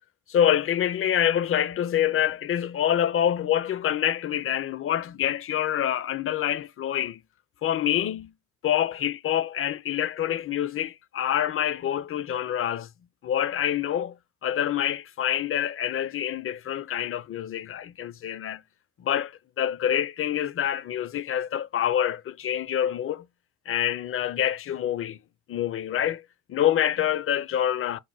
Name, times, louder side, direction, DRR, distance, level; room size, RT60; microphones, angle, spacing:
voice 1, 0.3-7.2 7.6-8.3 8.6-12.9 13.2-18.6 19.0-23.3 23.7-25.2 25.5-26.2 26.5-28.0, left 10 dB, 45° left, 0.5 m, -26 dB
6.3 x 2.1 x 3.8 m
cardioid pair, 90°, 30 cm